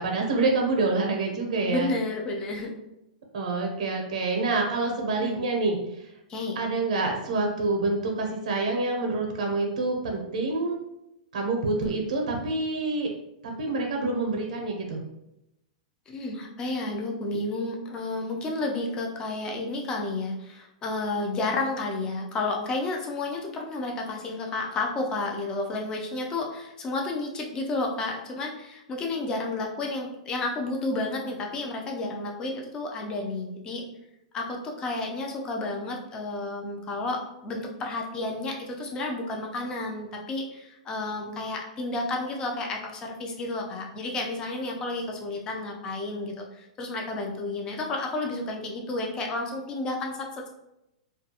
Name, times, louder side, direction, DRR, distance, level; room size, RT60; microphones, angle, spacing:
voice 1, 0.0-1.9 3.3-6.1 6.6-10.8 11.3-13.1 13.4-15.0, right 3 dB, 80° right, 1 dB, 0.5 m, -27 dB
voice 2, 1.6-2.7 5.2-5.5 6.3-6.6 16.1-33.8 34.3-50.5, left 2 dB, 20° left, 1 dB, 0.4 m, -31 dB
2.3 x 2.2 x 2.7 m, 0.87 s
hypercardioid pair, 155°, 4 cm